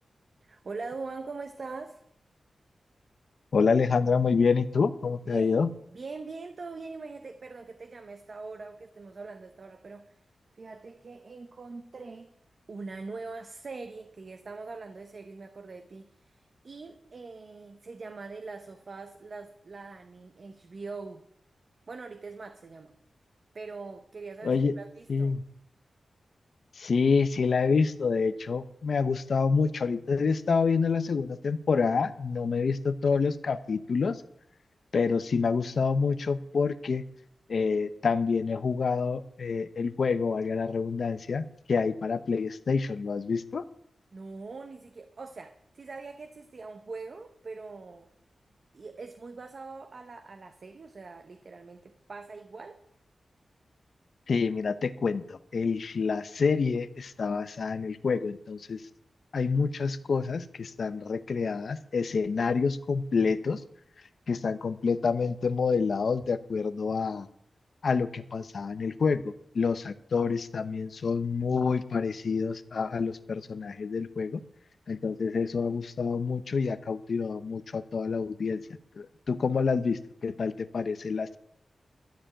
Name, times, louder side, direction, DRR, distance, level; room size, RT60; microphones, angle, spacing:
voice 1, 0.4-2.0 5.3-5.6 5.9-10.2 10.5-12.3 12.7-21.2 21.9-23.0 23.5-25.4 44.1-48.1 48.7-52.8, right 3 dB, 45° right, 6 dB, 0.9 m, -42 dB
voice 2, 3.5-5.7 24.4-24.7 25.1-25.4 26.8-34.2 34.9-37.0 37.5-43.6 54.3-58.8 59.3-63.6 64.3-67.3 67.8-74.4 74.9-78.6 79.0-81.4, left 5 dB, 55° left, 13 dB, 0.7 m, -27 dB
13.0 x 7.0 x 8.9 m, 0.75 s
wide cardioid pair, 165°, 0 cm